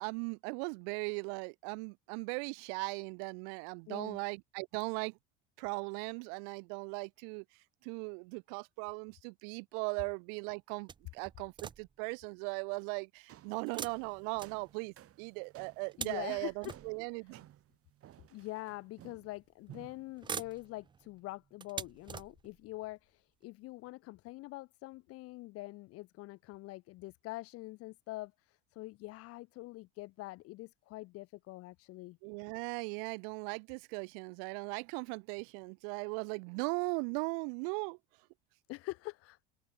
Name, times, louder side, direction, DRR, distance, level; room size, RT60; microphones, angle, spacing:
voice 1, 0.0-5.1 5.6-7.4 7.8-17.5 32.2-38.0, right 40 dB or more, 65° right, 0.9 m, -38 dB
voice 2, 3.9-4.2 16.0-16.7 18.3-32.2 38.7-39.4, left 19 dB, 50° left, 0.6 m, -45 dB
sound 1, 10.9-12.1 13.7-15.1 15.6-17.3 18.2-18.3 19.4-19.8 20.1-22.7 23.4-23.5 23.9-24.0, right 6 dB, 15° right, 0.4 m, -46 dB
sound 2, 13.3-19.4 19.7-20.2, right 12 dB, 45° right, 3.4 m, -57 dB
open air
hypercardioid pair, 75°, 31 cm